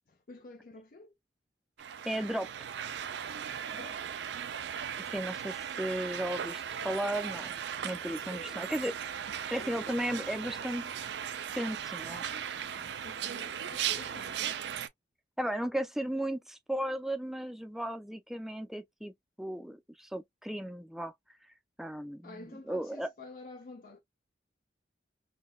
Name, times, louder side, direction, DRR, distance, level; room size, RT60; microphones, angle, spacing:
voice 1, 0.1-1.1 3.7-4.1 8.0-8.7 9.6-10.4 13.0-14.6 22.2-24.0, left 2 dB, 50° left, 0.6 m, -50 dB
sound 1, 1.8-14.9, right 9 dB, 70° right, 0.4 m, -37 dB
voice 2, 2.1-2.5 5.1-7.6 7.8-8.9 9.5-10.9 11.6-12.2 12.8-12.9 15.4-19.1 19.4-21.1 21.8-23.1, right 1 dB, ahead, 0.4 m, -35 dB
3.7 x 2.2 x 2.3 m
head